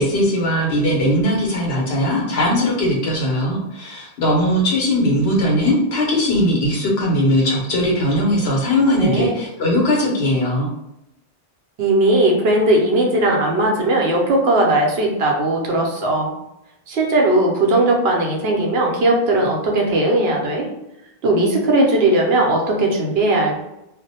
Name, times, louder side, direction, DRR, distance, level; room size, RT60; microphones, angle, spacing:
voice 1, 0.0-10.7, left 1 dB, 75° left, -4 dB, 1.1 m, -19 dB
voice 2, 9.0-9.4 11.8-16.3 16.9-20.7 21.2-23.6, right 1 dB, 75° right, 0 dB, 0.8 m, -18 dB
2.5 x 2.0 x 2.7 m, 0.89 s
omnidirectional pair, 1.1 m